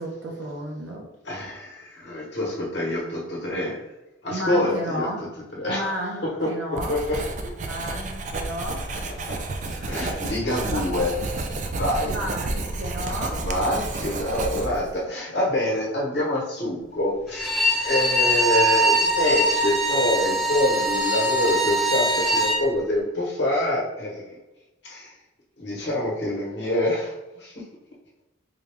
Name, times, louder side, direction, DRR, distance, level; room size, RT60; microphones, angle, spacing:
voice 1, 0.0-1.1 4.3-5.2 5.7-7.0 7.7-8.9 9.8-10.0 10.3-11.1 12.0-13.5 15.1-15.4, equal, 65° right, 0 dB, 0.8 m, -33 dB
voice 2, 1.2-3.8 4.2-5.1 5.5-6.5 6.9-7.5 9.9-11.1 11.7-12.1 13.4-17.6 17.8-24.4 24.8-25.1 25.6-27.6, left 1 dB, 60° left, -4 dB, 1.1 m, -26 dB
Writing, 6.8-15.0, right 2 dB, 40° right, 0.4 m, -30 dB
Bowed string instrument, 17.3-22.6, right 1 dB, ahead, 0.7 m, -22 dB
3.8 x 2.3 x 3.4 m, 1.0 s
head